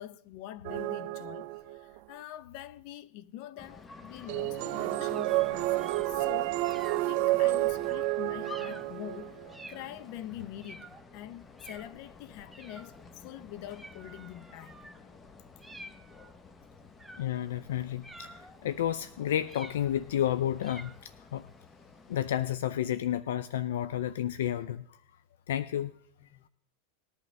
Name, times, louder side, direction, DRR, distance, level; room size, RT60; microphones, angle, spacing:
voice 1, 0.0-14.8 26.2-26.5, left 13 dB, 55° left, 0.8 m, -45 dB
sound 1, 0.6-2.0 4.3-9.5, right 19 dB, 60° right, 0.4 m, -30 dB
sound 2, 3.6-22.5, left 4 dB, 20° left, 1.0 m, -51 dB
sound 3, 5.1-6.2 6.6-7.1 7.8-8.1 8.4-8.9 9.5-9.9 10.6-11.0 11.6-11.9 12.5-13.0 13.7-15.0 15.6-16.3 17.0-17.4 18.0-18.6 19.4-20.1 20.6-21.0, right 2 dB, 5° right, 0.8 m, -50 dB
voice 2, 17.2-21.4 22.1-25.0 25.5-25.9, left 11 dB, 80° left, 0.4 m, -31 dB
19.0 x 11.0 x 3.4 m
hypercardioid pair, 105°, 0 cm